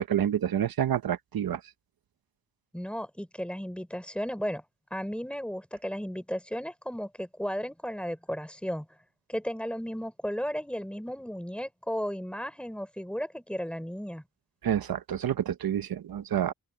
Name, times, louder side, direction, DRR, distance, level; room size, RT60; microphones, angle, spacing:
voice 1, 0.0-1.6 14.6-16.5, right 10 dB, 80° right, 0.9 m, -28 dB
voice 2, 2.7-4.6 4.9-8.9 9.3-14.2, equal, 5° left, 4.2 m, -34 dB
open air
wide cardioid pair, 110°, 35 cm